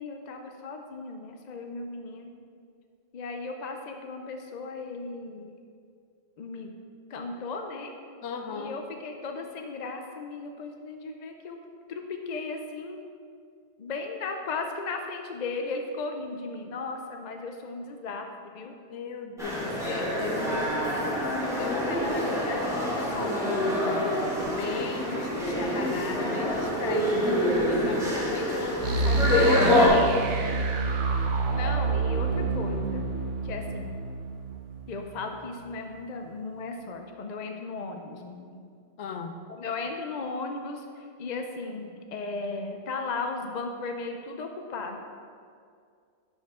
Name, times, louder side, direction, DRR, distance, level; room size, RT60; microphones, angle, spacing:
voice 1, 0.0-2.3 3.1-5.5 6.4-6.7 7.1-7.9 8.5-11.6 11.9-13.0 13.8-18.7 19.6-19.7 20.4-21.1 27.9-28.0 31.5-33.1 33.4-34.0 34.9-38.6 39.5-45.0, left 3 dB, 50° left, 4 dB, 0.6 m, -36 dB
voice 2, 8.2-8.8 18.9-20.7 21.6-30.1 39.0-39.3, left 5 dB, 70° left, 6 dB, 1.0 m, -37 dB
sound 1, 19.4-29.9, left 1 dB, 5° right, 1.8 m, -26 dB
sound 2, 28.8-35.6, right 3 dB, 75° right, 1.0 m, -28 dB
12.0 x 5.3 x 3.6 m, 2.3 s
omnidirectional pair, 1.2 m